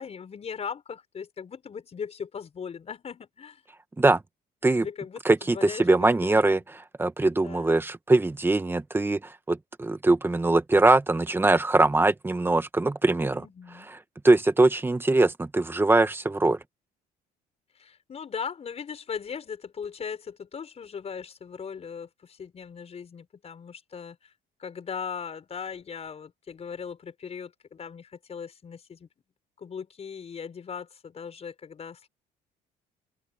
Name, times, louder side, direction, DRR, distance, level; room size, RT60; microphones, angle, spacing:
voice 1, 0.0-3.6 4.7-6.6 7.4-7.7 13.2-13.9 17.8-24.3 24.6-29.1 29.6-32.1, left 6 dB, 40° left, 5.8 m, -39 dB
voice 2, 5.3-13.4 14.2-16.6, right 2 dB, 15° right, 1.7 m, -22 dB
open air
cardioid pair, 110°, 17 cm